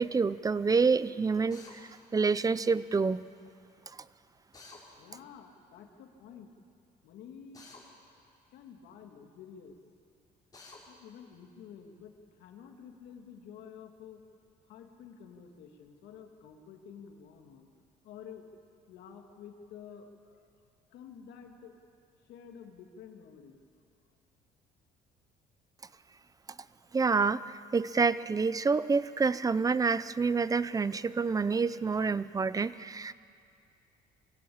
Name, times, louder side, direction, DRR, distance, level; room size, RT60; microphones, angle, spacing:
voice 1, 0.0-3.2 26.9-27.4 27.7-33.1, right 4 dB, 20° right, 16 dB, 0.5 m, -28 dB
Drill, 1.5-1.8 4.5-4.8 7.5-7.8 10.5-10.8, left 3 dB, 20° left, 6.0 m, -50 dB
voice 2, 4.9-6.5 7.0-7.6 8.5-9.8 10.9-17.7 18.0-18.5 18.9-20.5 20.8-21.8 22.2-23.6, left 7 dB, 80° left, 3 dB, 2.5 m, -50 dB
24.5 x 16.0 x 8.7 m, 2.4 s
cardioid pair, 110°, 17 cm